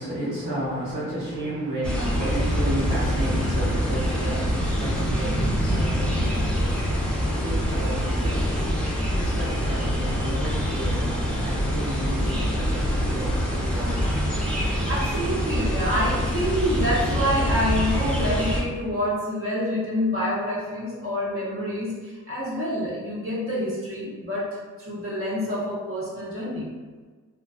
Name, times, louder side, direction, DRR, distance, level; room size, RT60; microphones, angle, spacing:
voice 1, 0.0-14.2, right 1 dB, 65° right, -11 dB, 1.1 m, -33 dB
sound 1, 1.8-18.6, equal, 5° left, 0.6 m, -25 dB
voice 2, 14.7-26.7, equal, 40° right, -7 dB, 0.9 m, -27 dB
2.4 x 2.2 x 2.3 m, 1.4 s
cardioid pair, 65°, 33 cm